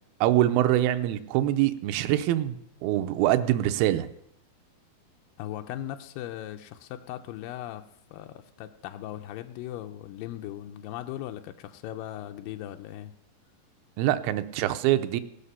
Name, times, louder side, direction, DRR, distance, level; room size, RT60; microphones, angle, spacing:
voice 1, 0.2-4.1 14.0-15.2, right 13 dB, 80° right, 8 dB, 2.4 m, -24 dB
voice 2, 5.4-7.8 8.1-13.1, left 13 dB, 90° left, 6 dB, 2.0 m, -38 dB
18.5 x 6.6 x 5.6 m, 0.75 s
omnidirectional pair, 4.7 m